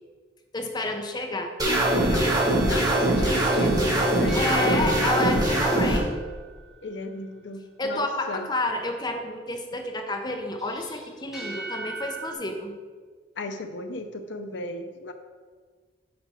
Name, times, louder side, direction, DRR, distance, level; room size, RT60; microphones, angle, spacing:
voice 1, 0.5-1.5 4.3-6.1 7.8-12.7, left 2 dB, 20° left, 4 dB, 0.7 m, -30 dB
sound 1, 1.6-6.0, right 1 dB, 20° right, 1.4 m, -22 dB
voice 2, 2.1-5.3 6.8-8.5 13.4-15.1, left 2 dB, 65° left, 6 dB, 0.6 m, -35 dB
sound 2, 3.5-7.0 10.6-12.3, right 3 dB, ahead, 1.6 m, -38 dB
9.4 x 5.0 x 4.4 m, 1.5 s
head